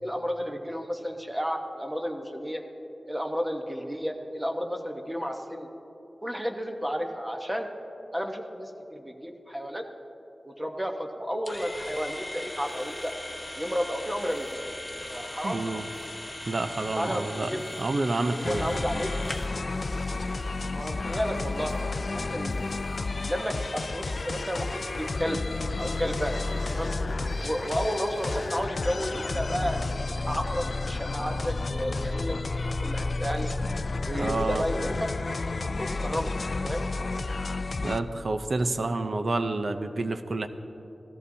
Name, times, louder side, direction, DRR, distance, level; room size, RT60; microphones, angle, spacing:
voice 1, 0.0-2.6 3.1-5.7 6.2-7.7 8.1-9.8 10.4-13.1 13.6-14.5 15.1-15.8 17.0-17.9 18.4-19.1 20.7-22.6 23.3-25.4 25.8-26.4 26.7-26.9 27.4-29.8 30.2-32.5 32.8-33.5 34.1-35.1 35.5-36.3 36.6-36.8, equal, 10° right, 3 dB, 1.0 m, -32 dB
sound 1, 11.5-19.6, left 1 dB, 25° left, 1.0 m, -39 dB
sound 2, 11.5-28.7, right 1 dB, 45° right, 1.6 m, -49 dB
voice 2, 15.4-15.9 16.5-18.8 34.2-34.6 37.8-40.5, right 2 dB, 65° right, 8 dB, 0.6 m, -29 dB
sound 3, 18.4-38.0, left 3 dB, 60° left, 0.3 m, -31 dB
16.5 x 14.0 x 2.8 m, 3.0 s
wide cardioid pair, 70°, 0 cm